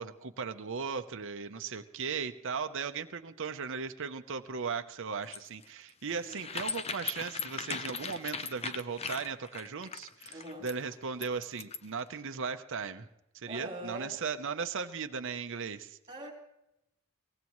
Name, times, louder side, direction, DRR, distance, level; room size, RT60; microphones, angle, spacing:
voice 1, 0.0-13.1 13.3-16.0, right 5 dB, 60° right, 8 dB, 0.8 m, -37 dB
sound 1, 5.2-12.0, left 5 dB, 30° left, 0.7 m, -38 dB
voice 2, 10.3-10.7 13.5-14.1 16.1-16.3, right 1 dB, 25° right, 1 dB, 4.0 m, -42 dB
23.0 x 18.5 x 3.1 m, 0.86 s
head